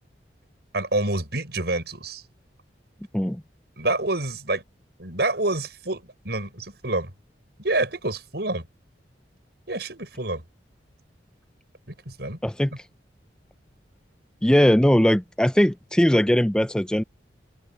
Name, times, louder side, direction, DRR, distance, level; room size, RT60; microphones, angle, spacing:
voice 1, 0.7-2.2 3.8-4.6 5.0-7.1 7.6-8.7 9.7-10.4 12.1-12.4, right 2 dB, 65° right, 6.3 m, -27 dB
voice 2, 12.4-12.7 14.4-17.0, equal, 5° left, 0.4 m, -20 dB
head